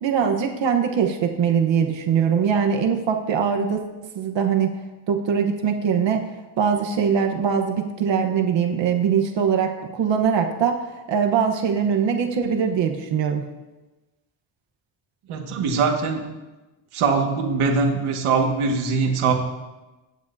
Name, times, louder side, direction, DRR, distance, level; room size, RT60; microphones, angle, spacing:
voice 1, 0.0-4.7 5.1-6.3 6.6-13.5, right 7 dB, 65° right, 3 dB, 1.2 m, -22 dB
voice 2, 15.3-16.2 16.9-19.3, right 4 dB, 80° right, 1 dB, 1.8 m, -22 dB
24.0 x 9.8 x 2.7 m, 1.1 s
cardioid pair, 145°, 49 cm